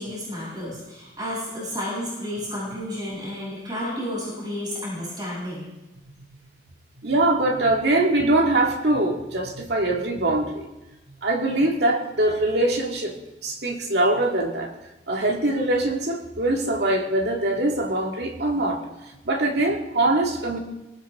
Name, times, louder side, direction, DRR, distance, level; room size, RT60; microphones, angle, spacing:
voice 1, 0.0-5.7, left 1 dB, 25° right, -6 dB, 7.7 m, -31 dB
voice 2, 7.0-10.7 11.2-13.2 13.4-14.7 15.1-18.8 19.3-20.6, right 2 dB, 65° right, 2 dB, 2.0 m, -23 dB
19.5 x 19.0 x 3.6 m, 1.0 s
head